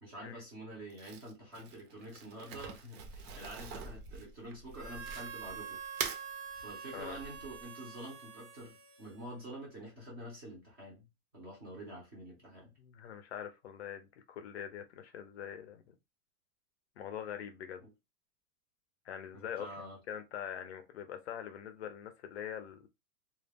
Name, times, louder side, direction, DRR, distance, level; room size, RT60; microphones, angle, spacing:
voice 1, 0.0-5.8 6.5-12.8 17.8-17.9 19.3-20.0, right 1 dB, 15° right, 0.4 m, -47 dB
Crumpling crinkling, 0.9-5.5 5.9-6.2, right 6 dB, 70° right, 0.7 m, -43 dB
sound 1, 3.0-7.6, right 1 dB, 15° left, 0.7 m, -53 dB
Harmonica, 4.7-9.6, right 7 dB, 90° right, 1.0 m, -46 dB
voice 2, 12.8-15.9 17.0-17.8 19.1-19.7 20.1-22.9, left 9 dB, 45° left, 0.4 m, -43 dB
2.2 x 2.0 x 3.3 m
supercardioid pair, 170°, 48 cm